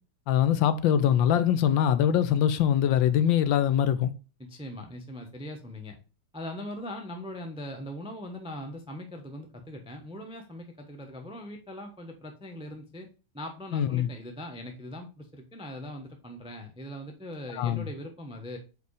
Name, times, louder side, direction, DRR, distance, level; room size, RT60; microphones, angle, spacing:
voice 1, 0.3-4.1 13.7-14.1 17.5-17.9, left 10 dB, 75° left, 1.3 m, -23 dB
voice 2, 4.4-6.0 6.3-13.1 13.3-18.6, left 1 dB, 10° right, 0.3 m, -40 dB
5.0 x 4.6 x 4.7 m
omnidirectional pair, 2.2 m